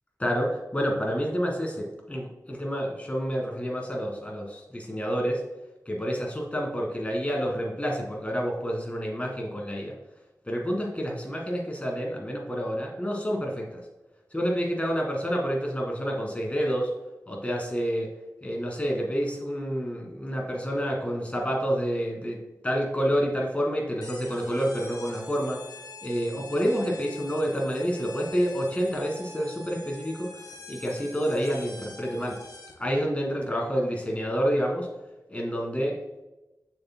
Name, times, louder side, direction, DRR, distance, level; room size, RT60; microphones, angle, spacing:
voice 1, 0.2-5.4 5.9-9.9 10.5-13.7 14.3-16.9 17.3-18.1 18.4-25.6 26.0-30.3 30.7-32.4 32.8-34.9 35.3-35.9, equal, 20° left, -1 dB, 1.7 m, -28 dB
sound 1, 24.0-32.9, left 3 dB, 75° left, 1.0 m, -45 dB
6.7 x 6.5 x 2.2 m, 1.0 s
wide cardioid pair, 80°, 7 cm